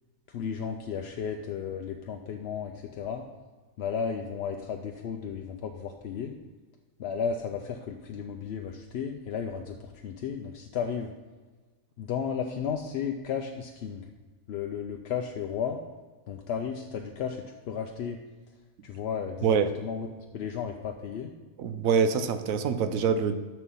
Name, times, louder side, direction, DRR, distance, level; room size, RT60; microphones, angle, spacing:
voice 1, 0.3-3.3 3.8-6.3 7.0-11.1 12.0-14.1 14.5-15.8 16.3-18.2 18.8-21.3, left 7 dB, 60° left, 3 dB, 0.7 m, -34 dB
voice 2, 21.6-23.4, right 6 dB, 70° right, 9 dB, 1.0 m, -25 dB
6.8 x 6.3 x 5.5 m, 1.3 s
omnidirectional pair, 1.5 m